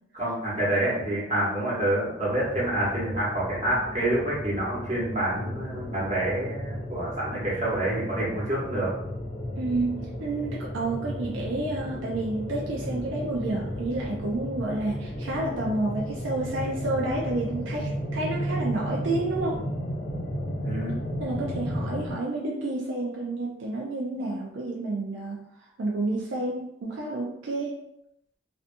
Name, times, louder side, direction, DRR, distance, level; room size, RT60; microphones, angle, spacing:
voice 1, 0.1-8.9 20.6-20.9, right 1 dB, 40° right, -7 dB, 1.1 m, -27 dB
sound 1, 2.2-22.1, equal, 35° left, 0.5 m, -34 dB
voice 2, 9.6-19.7 21.2-25.4 25.8-27.8, right 2 dB, 75° right, -2 dB, 0.4 m, -30 dB
2.6 x 2.3 x 2.6 m, 0.79 s
head